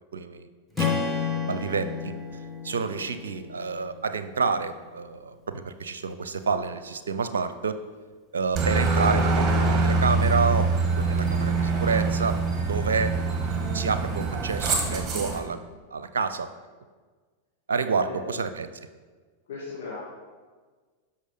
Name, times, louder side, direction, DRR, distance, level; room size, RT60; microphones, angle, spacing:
voice 1, 0.1-0.5 0.8-2.1 2.6-7.8 8.3-12.4 12.7-13.1 13.7-15.6 15.9-16.5 17.7-18.7, right 5 dB, 65° right, 11 dB, 0.6 m, -29 dB
Strum, 0.8-5.0, left 5 dB, ahead, 1.2 m, -32 dB
Aircraft, 8.6-15.4, right 3 dB, 25° right, 2.1 m, -24 dB
voice 2, 17.9-18.5 19.5-20.0, left 3 dB, 55° left, -7 dB, 2.4 m, -37 dB
13.0 x 5.6 x 5.2 m, 1.4 s
figure-of-eight pair, 90°, 0 cm